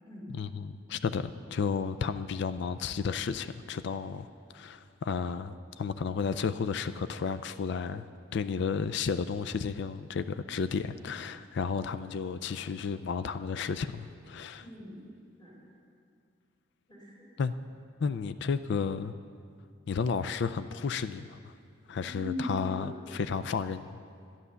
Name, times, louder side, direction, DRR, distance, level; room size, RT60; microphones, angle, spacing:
voice 1, 0.3-4.3 4.5-8.1 8.3-14.7 17.4-17.5 18.0-19.1 19.9-21.5 21.9-24.0, left 5 dB, 60° left, 13 dB, 0.4 m, -32 dB
voice 2, 14.6-15.0 15.4-15.6 16.9-17.3 22.0-22.9, left 1 dB, 20° left, -6 dB, 4.2 m, -39 dB
11.5 x 11.0 x 6.9 m, 2.3 s
head